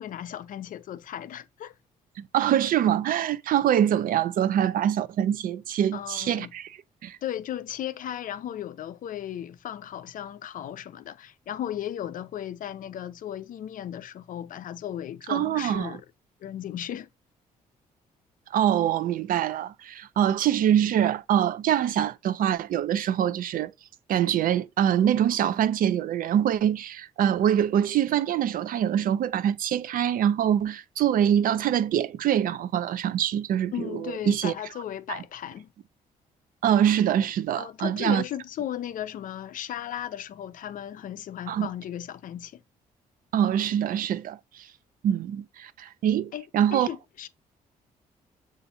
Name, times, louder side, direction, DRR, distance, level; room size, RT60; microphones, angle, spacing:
voice 1, 0.0-1.7 5.9-6.5 7.2-16.0 16.4-17.1 33.7-35.7 37.6-42.6 46.3-46.4 46.7-47.3, left 11 dB, 60° left, 0.4 m, -36 dB
voice 2, 2.3-7.2 15.3-16.0 18.5-23.7 24.1-34.5 35.1-35.2 36.6-38.2 41.5-41.7 43.3-44.7 45.0-46.9, right 10 dB, 65° right, 0.4 m, -24 dB
6.7 x 2.5 x 2.7 m
supercardioid pair, 65°, 16 cm